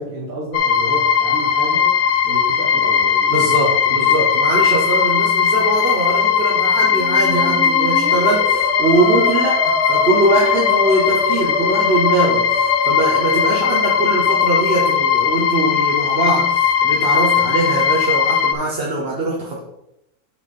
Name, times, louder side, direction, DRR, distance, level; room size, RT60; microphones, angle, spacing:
voice 1, 0.0-1.9 2.2-4.1, right 1 dB, 65° right, -4 dB, 1.8 m, -30 dB
sound 1, 0.5-18.5, left 7 dB, 60° left, 0.9 m, -18 dB
voice 2, 3.3-19.6, right 2 dB, 45° right, -2 dB, 1.1 m, -21 dB
Musical instrument, 6.8-14.8, left 2 dB, 10° right, 1.8 m, -26 dB
6.9 x 4.8 x 5.4 m, 0.85 s
omnidirectional pair, 1.6 m